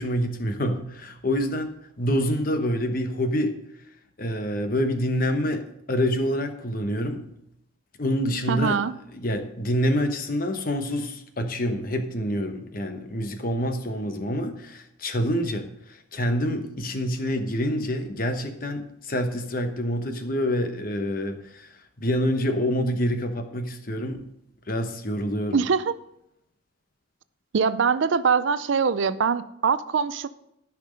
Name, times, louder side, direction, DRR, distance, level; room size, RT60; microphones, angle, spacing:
voice 1, 0.0-3.5 4.2-7.2 8.0-8.8 9.1-24.2 24.7-25.6, equal, 45° left, 7 dB, 1.0 m, -27 dB
voice 2, 8.5-8.9 25.5-25.9 27.5-30.3, right 6 dB, 65° right, 14 dB, 0.5 m, -23 dB
13.5 x 6.0 x 5.2 m, 0.79 s
head